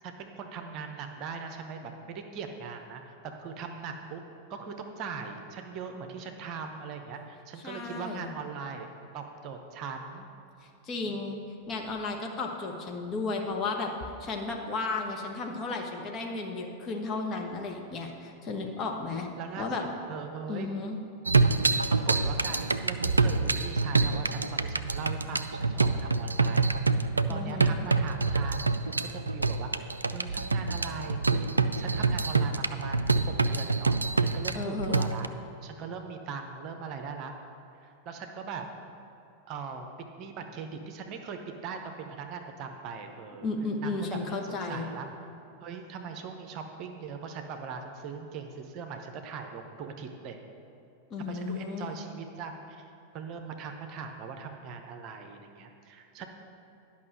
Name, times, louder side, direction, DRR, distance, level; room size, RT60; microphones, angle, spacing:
voice 1, 0.0-4.2 4.5-10.3 11.0-11.3 19.4-20.7 21.9-31.5 31.8-33.1 33.4-35.3 35.6-37.3 37.8-38.6 39.5-39.9 40.2-43.5 43.8-45.1 45.6-50.4 51.2-56.3, right 5 dB, 40° right, 5 dB, 0.8 m, -40 dB
voice 2, 7.6-8.3 10.8-11.4 11.7-13.9 14.2-19.3 19.6-19.8 20.5-21.0 27.3-27.8 34.5-35.1 43.4-44.9 51.1-52.0, left 3 dB, 30° left, 2 dB, 1.2 m, -34 dB
sound 1, 21.3-35.3, right 3 dB, 80° right, 0.3 m, -27 dB
11.0 x 5.6 x 6.4 m, 2.7 s
figure-of-eight pair, 90°, 0 cm